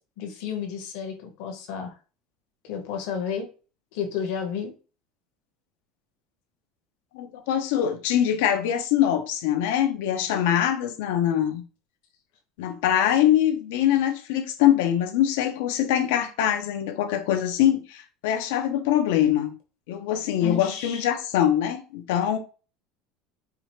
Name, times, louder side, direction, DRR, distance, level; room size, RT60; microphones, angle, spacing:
voice 1, 0.2-1.9 2.6-3.5 3.9-4.7 20.4-21.0, left 7 dB, 65° left, 1.1 m, -32 dB
voice 2, 7.1-11.6 12.6-19.5 19.9-22.4, left 10 dB, 90° left, 0.7 m, -23 dB
4.8 x 2.4 x 3.1 m
cardioid pair, 165°, 0 cm